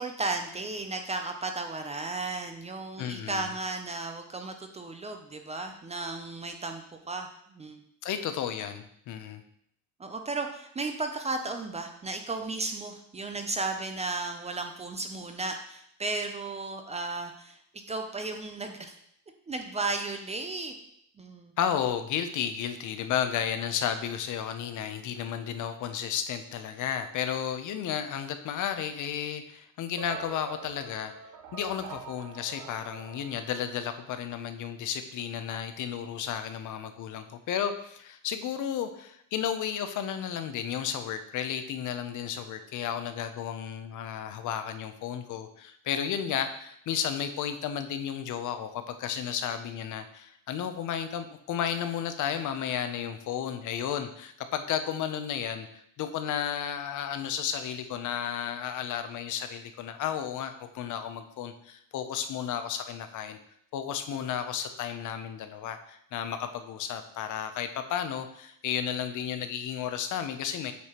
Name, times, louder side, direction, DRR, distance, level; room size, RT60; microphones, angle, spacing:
voice 1, 0.0-7.8 10.0-17.6 17.9-19.0 19.5-20.7 21.2-21.5, right 3 dB, 20° right, 5 dB, 0.4 m, -34 dB
voice 2, 3.0-3.5 8.0-9.4 21.6-31.1 31.5-63.4 63.7-70.7, left 9 dB, 60° left, 8 dB, 0.7 m, -33 dB
sound 1, 30.0-34.3, right 4 dB, 70° right, 1.0 m, -45 dB
8.3 x 4.7 x 2.9 m, 0.71 s
cardioid pair, 150°, 35 cm